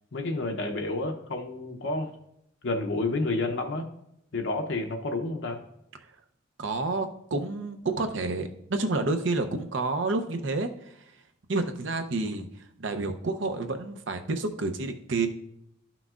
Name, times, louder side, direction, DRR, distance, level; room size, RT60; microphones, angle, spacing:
voice 1, 0.1-2.1 2.6-3.9 4.3-5.6, left 2 dB, 70° left, 3 dB, 0.8 m, -30 dB
voice 2, 6.6-10.7 11.5-12.5 12.8-15.3, right 3 dB, 75° right, 7 dB, 0.7 m, -29 dB
12.0 x 5.9 x 2.4 m, 0.78 s
head